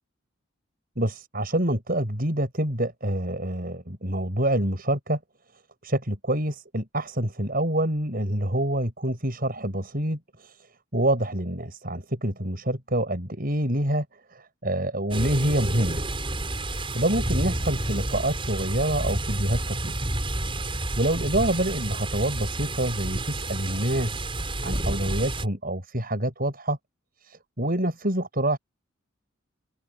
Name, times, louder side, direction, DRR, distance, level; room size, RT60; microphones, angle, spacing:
voice 1, 1.0-5.2 5.8-14.1 14.3-16.1 16.6-20.0 20.6-24.2 24.6-26.8 27.2-28.6, right 1 dB, 45° right, 7.0 m, -27 dB
sound 1, 15.1-25.5, right 1 dB, 25° right, 6.5 m, -30 dB
open air
head